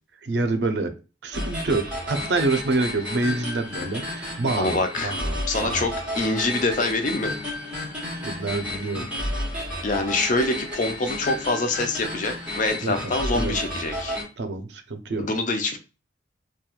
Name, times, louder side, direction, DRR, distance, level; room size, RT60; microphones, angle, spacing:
voice 1, 0.2-0.9 1.2-4.8 5.0-5.9 8.2-9.1 12.8-13.6 14.4-15.3, right 3 dB, 70° right, 7 dB, 0.5 m, -27 dB
sound 1, 1.3-14.2, left 1 dB, 5° right, 1.0 m, -31 dB
voice 2, 4.6-5.1 5.5-7.3 9.8-14.2 15.2-15.8, left 2 dB, 45° left, 6 dB, 0.4 m, -25 dB
2.9 x 2.3 x 2.3 m, 0.31 s
head